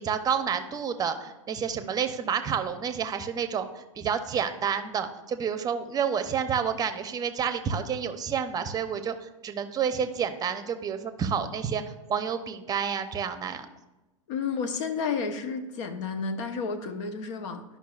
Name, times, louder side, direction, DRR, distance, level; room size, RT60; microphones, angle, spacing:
voice 1, 0.0-11.8 12.1-13.7, right 7 dB, 20° right, 9 dB, 0.7 m, -29 dB
voice 2, 14.3-17.6, left 5 dB, 60° left, 8 dB, 1.0 m, -31 dB
12.0 x 5.6 x 2.4 m, 1.0 s
hypercardioid pair, 110°, 17 cm